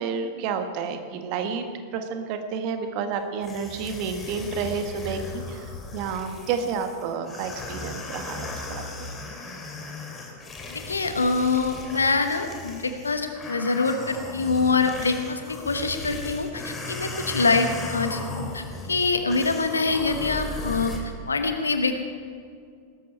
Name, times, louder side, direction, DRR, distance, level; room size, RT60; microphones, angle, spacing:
voice 1, 0.0-1.6 1.9-9.1, right 6 dB, 45° right, 6 dB, 1.5 m, -30 dB
sound 1, 3.4-21.0, left 2 dB, 20° left, 3.0 m, -37 dB
voice 2, 10.7-20.9 21.3-22.0, left 3 dB, 75° left, 7 dB, 1.3 m, -25 dB
19.0 x 13.5 x 4.4 m, 2.2 s
figure-of-eight pair, 90°, 0 cm